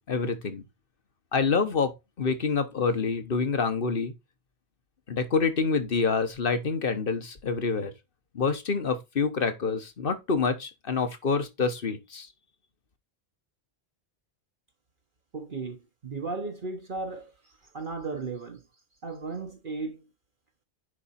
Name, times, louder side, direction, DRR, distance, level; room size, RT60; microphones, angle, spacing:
voice 1, 0.1-0.6 1.3-4.1 5.1-7.9 8.3-12.3, left 5 dB, 55° left, 1.4 m, -27 dB
voice 2, 15.3-17.3 17.7-18.6 19.0-20.0, right 3 dB, 55° right, 1.2 m, -35 dB
10.0 x 4.3 x 4.3 m
omnidirectional pair, 1.1 m